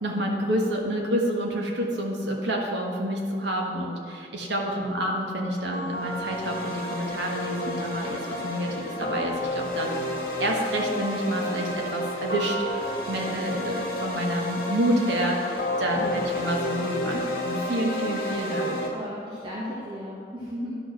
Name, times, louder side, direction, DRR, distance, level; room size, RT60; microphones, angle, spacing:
voice 1, 0.0-18.7, equal, 90° right, 0 dB, 1.4 m, -28 dB
sound 1, 5.7-18.9, left 1 dB, 55° left, 1.8 m, -31 dB
voice 2, 15.9-16.2 18.6-20.8, equal, 25° right, -7 dB, 1.2 m, -35 dB
11.0 x 4.7 x 6.4 m, 2.4 s
head